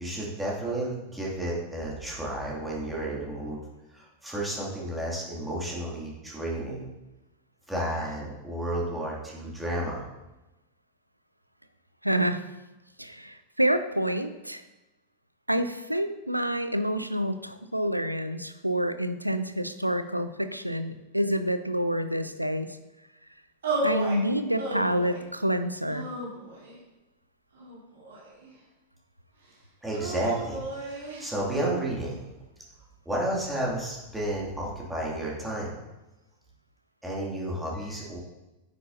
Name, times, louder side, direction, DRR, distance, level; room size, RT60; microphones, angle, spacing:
voice 1, 0.0-3.6 3.9-6.9 7.7-10.0 29.8-32.2 33.1-35.8 37.0-38.2, right 1 dB, 5° right, -5 dB, 2.5 m, -32 dB
voice 2, 12.0-12.4 13.0-14.6 15.5-22.8 23.8-26.1, equal, 90° right, 10 dB, 0.5 m, -28 dB
sound 1, 23.6-24.2 24.6-25.2 25.9-26.8 27.5-28.5 29.9-31.3, right 2 dB, 65° right, 3.1 m, -33 dB
9.6 x 9.3 x 2.8 m, 1.0 s
figure-of-eight pair, 90°, 0 cm